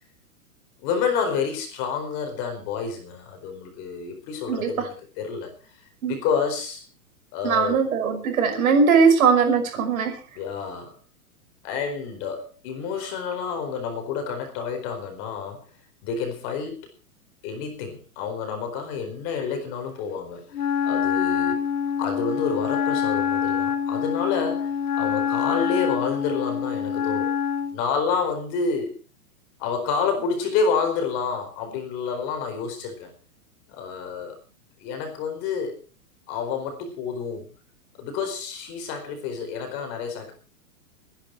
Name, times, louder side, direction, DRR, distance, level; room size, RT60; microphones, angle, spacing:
voice 1, 0.8-5.5 6.1-6.8 7.3-7.9 10.4-11.0 11.6-15.6 16.0-16.9 17.4-20.5 20.8-21.6 22.0-27.3 27.7-28.9 29.6-33.1 33.7-34.4 34.8-35.8 36.3-37.5 38.0-40.3, left 5 dB, 30° left, 5 dB, 4.5 m, -29 dB
voice 2, 4.5-4.9 6.0-6.2 7.4-10.2, right 5 dB, 65° right, 7 dB, 5.6 m, -20 dB
Wind instrument woodwind instrument, 20.5-27.8, left 7 dB, 80° left, 3.0 m, -25 dB
24.0 x 10.5 x 4.5 m, 0.36 s
supercardioid pair, 175°, 44 cm